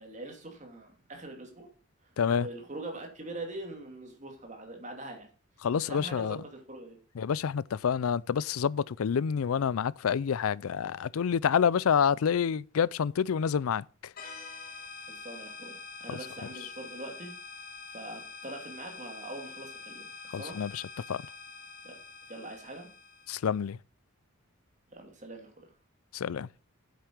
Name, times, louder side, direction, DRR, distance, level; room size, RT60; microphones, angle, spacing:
voice 1, 0.0-1.7 2.4-5.3 5.7-7.0 15.1-17.3 17.9-20.6 21.8-22.0 22.3-22.9 24.9-25.7, right 2 dB, 35° right, 2.7 m, -43 dB
voice 2, 2.2-2.5 5.6-6.4 7.2-13.8 20.3-20.8 21.1-21.2 23.3-23.8 26.1-26.5, left 7 dB, 90° left, 0.4 m, -28 dB
sound 1, 14.2-23.5, left 4 dB, 45° left, 1.9 m, -46 dB
8.3 x 7.9 x 6.0 m
head